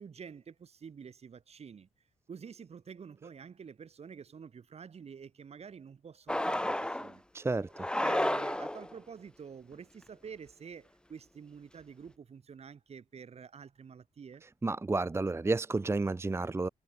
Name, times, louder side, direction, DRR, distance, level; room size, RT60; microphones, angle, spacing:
voice 1, 0.0-1.9 2.3-7.2 8.0-14.4, right 6 dB, 50° right, 2.9 m, -48 dB
sound 1, 6.3-7.1 7.8-8.9, left 1 dB, 5° left, 1.2 m, -31 dB
voice 2, 7.3-7.7 14.6-16.7, right 3 dB, 20° right, 0.7 m, -31 dB
cardioid pair, 90°, 13 cm